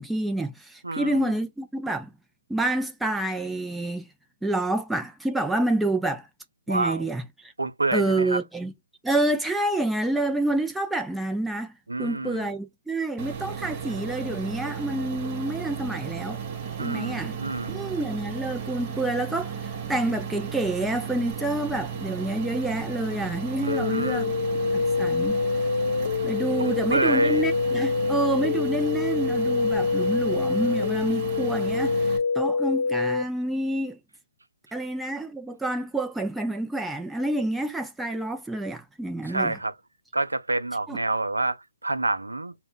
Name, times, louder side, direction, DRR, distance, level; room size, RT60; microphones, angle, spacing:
voice 1, 0.0-2.1 2.5-4.0 4.4-6.3 6.7-7.5 7.9-8.7 9.0-11.7 12.0-16.4 16.8-17.4 17.7-24.3 24.7-25.4 26.2-32.1 32.4-34.0 34.7-39.6 40.9-41.0, right 1 dB, 5° right, 0.3 m, -28 dB
voice 2, 0.8-1.2 6.7-7.1 7.6-8.4 11.9-12.5 16.8-17.9 23.6-24.2 26.6-27.5 39.3-39.7 40.1-42.5, right 2 dB, 85° right, 0.4 m, -28 dB
sound 1, 13.2-32.2, right 7 dB, 25° right, 0.7 m, -35 dB
sound 2, 23.7-33.2, left 4 dB, 70° left, 0.3 m, -26 dB
2.1 x 2.1 x 3.6 m
figure-of-eight pair, 140°, 0 cm